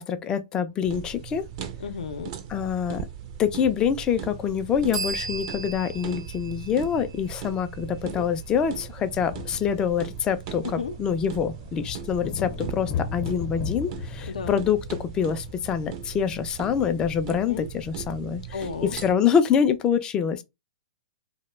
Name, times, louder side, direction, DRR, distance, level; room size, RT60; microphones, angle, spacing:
voice 1, 0.0-1.4 2.5-3.0 3.4-20.4, left 7 dB, 20° left, 0.3 m, -25 dB
sound 1, 0.8-19.2, right 8 dB, 40° right, 0.4 m, -39 dB
voice 2, 1.8-2.3 8.0-8.3 10.6-10.9 14.3-14.5 17.4-17.7 18.5-19.0, left 6 dB, 80° left, 0.5 m, -33 dB
sound 2, 4.0-5.6 6.9-7.0 7.2-7.4 7.7-19.8, left 7 dB, 45° left, 0.7 m, -39 dB
sound 3, 4.9-8.5, right 4 dB, 90° right, 0.8 m, -37 dB
2.2 x 2.1 x 3.0 m
hypercardioid pair, 135°, 4 cm